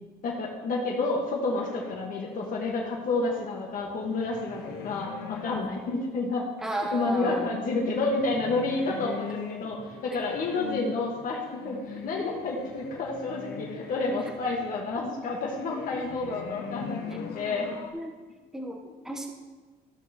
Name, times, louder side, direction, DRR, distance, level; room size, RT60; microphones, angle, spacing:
voice 1, 0.2-6.5 6.9-17.7, left 3 dB, 55° left, -2 dB, 1.5 m, -30 dB
sound 1, 1.5-6.0 6.7-17.9, left 5 dB, 80° left, 1.0 m, -41 dB
voice 2, 6.6-7.5 17.9-18.1 18.5-18.8 19.0-19.3, right 1 dB, 5° right, 0 dB, 1.1 m, -33 dB
14.0 x 6.3 x 3.0 m, 1.3 s
cardioid pair, 110°, 17 cm